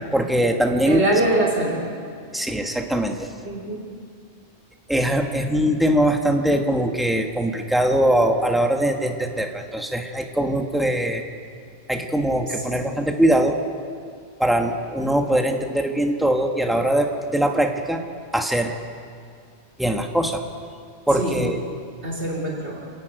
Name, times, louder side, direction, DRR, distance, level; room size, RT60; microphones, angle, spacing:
voice 1, 0.1-1.0 2.3-3.3 4.9-11.2 11.9-13.6 14.4-18.0 18.3-18.7 19.8-20.4 21.1-21.6, right 1 dB, ahead, 2 dB, 1.4 m, -21 dB
voice 2, 0.8-1.8 3.4-3.8 12.5-12.8 21.1-21.4 22.0-22.9, right 1 dB, 85° right, -4 dB, 4.1 m, -24 dB
28.0 x 11.0 x 9.1 m, 2.2 s
omnidirectional pair, 1.1 m